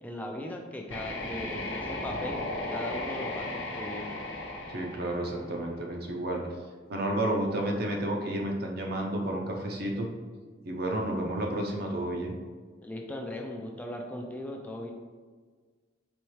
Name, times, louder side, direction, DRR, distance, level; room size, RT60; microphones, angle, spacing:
voice 1, 0.0-2.4 2.7-4.2 12.8-14.9, left 1 dB, 10° left, 1 dB, 0.3 m, -38 dB
sound 1, 0.9-5.8, left 2 dB, 70° left, 0.8 m, -36 dB
voice 2, 4.7-6.4 6.9-10.1 10.6-12.3, right 1 dB, 60° right, 0 dB, 0.7 m, -31 dB
4.3 x 3.1 x 3.1 m, 1.5 s
head